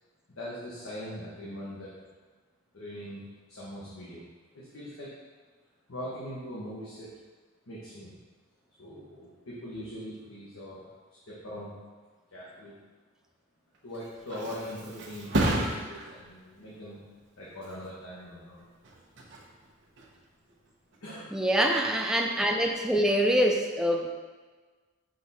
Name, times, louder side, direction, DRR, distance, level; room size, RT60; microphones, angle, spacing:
voice 1, 0.3-1.9 2.7-3.2 3.5-4.2 4.5-5.1 5.9-7.1 7.7-8.1 8.8-10.9 11.3-11.7 12.3-12.8 13.8-17.0 17.4-18.7 19.2-19.3 21.0-21.4, equal, 75° left, -7 dB, 1.1 m, -41 dB
Thump thud, 13.7-21.2 21.6-22.0, right 1 dB, 55° right, 1.0 m, -35 dB
voice 2, 21.3-24.1, equal, 5° right, 1 dB, 0.4 m, -25 dB
6.5 x 3.5 x 4.2 m, 1.4 s
head